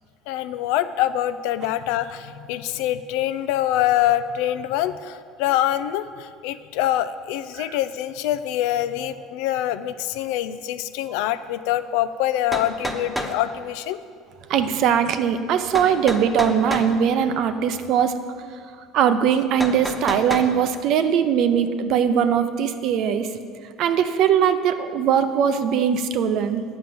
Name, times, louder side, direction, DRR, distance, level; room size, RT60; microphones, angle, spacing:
voice 1, 0.3-14.0, left 12 dB, 80° left, 13 dB, 0.4 m, -25 dB
sound 1, 12.0-12.1 12.5-13.4 15.7-16.9 19.6-20.5, equal, 5° right, 1.0 m, -29 dB
voice 2, 14.5-18.1 18.9-23.3 23.8-26.6, right 8 dB, 60° right, 10 dB, 0.6 m, -20 dB
8.8 x 5.5 x 7.7 m, 2.1 s
supercardioid pair, 105°, 0 cm